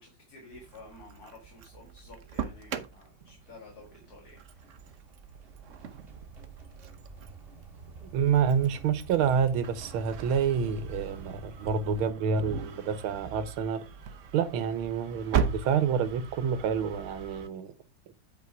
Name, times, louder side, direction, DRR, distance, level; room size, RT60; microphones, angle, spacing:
voice 1, 0.0-4.7, left 3 dB, 50° left, 2.3 m, -51 dB
Engine starting, 0.5-17.5, right 7 dB, 65° right, 0.7 m, -39 dB
sound 1, 2.6-12.1, right 4 dB, 30° right, 1.5 m, -49 dB
voice 2, 8.0-13.8 14.3-17.7, right 7 dB, 85° right, 1.7 m, -28 dB
8.4 x 4.7 x 4.7 m
omnidirectional pair, 2.3 m